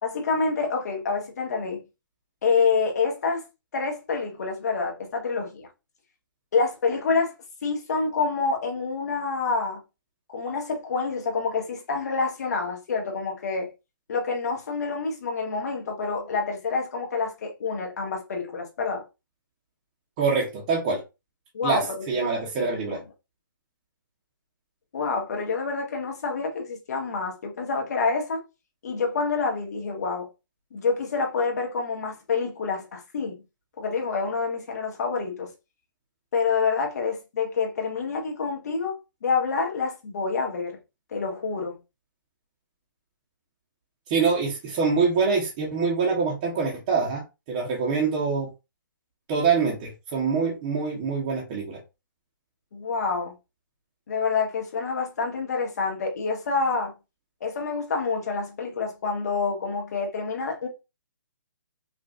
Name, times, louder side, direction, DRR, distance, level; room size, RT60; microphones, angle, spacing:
voice 1, 0.0-1.8 2.4-3.4 3.7-5.7 6.5-7.3 7.6-9.8 10.3-13.7 14.1-19.0 21.5-22.7 24.9-28.4 28.8-30.3 30.7-33.4 33.8-35.5 36.3-39.0 39.2-40.8 41.1-41.8 52.7-53.3 54.1-56.9 57.4-60.7, left 4 dB, 50° left, 1.4 m, -27 dB
voice 2, 20.2-21.0 21.6-23.0 44.1-48.5 49.3-51.8, right 5 dB, 25° right, 0.9 m, -25 dB
5.3 x 2.6 x 2.4 m
hypercardioid pair, 165°, 11 cm